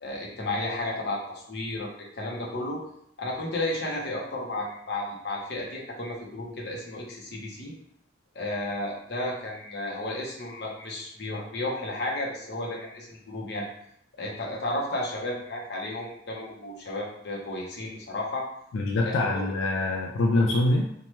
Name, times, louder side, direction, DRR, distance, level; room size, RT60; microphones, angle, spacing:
voice 1, 0.0-1.9 2.2-2.8 3.2-7.7 8.3-13.7 14.2-18.4 19.0-19.4, left 1 dB, 55° left, -2 dB, 0.7 m, -33 dB
voice 2, 18.7-20.8, left 2 dB, 85° left, 1 dB, 0.3 m, -24 dB
2.9 x 2.1 x 3.0 m, 0.72 s
head